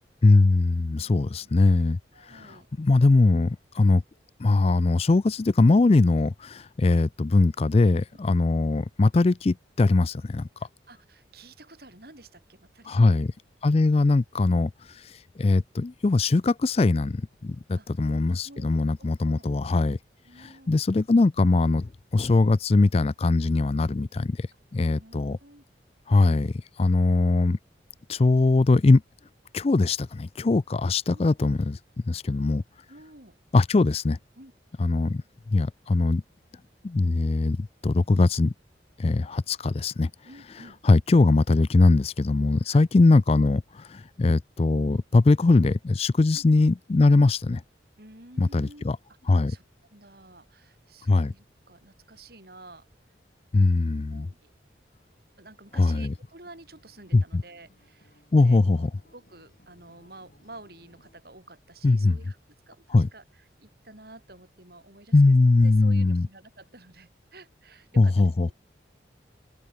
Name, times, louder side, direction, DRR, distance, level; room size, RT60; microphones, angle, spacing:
voice 1, 0.2-4.0 4.4-10.5 12.9-13.3 13.6-20.0 20.4-24.5 24.7-25.4 26.1-27.6 28.1-29.0 29.5-31.8 32.0-32.6 33.5-34.2 34.8-35.2 35.5-36.2 36.8-38.5 39.0-40.1 40.8-47.6 48.4-49.0 49.3-49.6 51.1-51.3 53.5-54.3 55.7-56.1 57.1-57.4 58.3-58.9 61.8-62.2 62.9-63.1 65.1-66.3 68.0-68.5, left 3 dB, 35° left, 0.4 m, -21 dB
voice 2, 1.0-1.5 2.1-2.7 10.9-13.1 17.7-17.9 18.4-19.4 20.3-20.8 24.9-25.6 31.1-31.3 32.1-32.2 32.9-33.4 34.4-34.5 40.2-40.8 42.6-42.8 46.3-46.4 48.0-48.9 49.3-49.6 49.9-52.9 54.1-54.5 55.4-58.9 59.1-62.4 62.7-63.2 63.6-68.5, right 2 dB, 55° right, 7.1 m, -50 dB
Acoustic guitar, 56.1-61.2, left 1 dB, 50° left, 7.6 m, -62 dB
head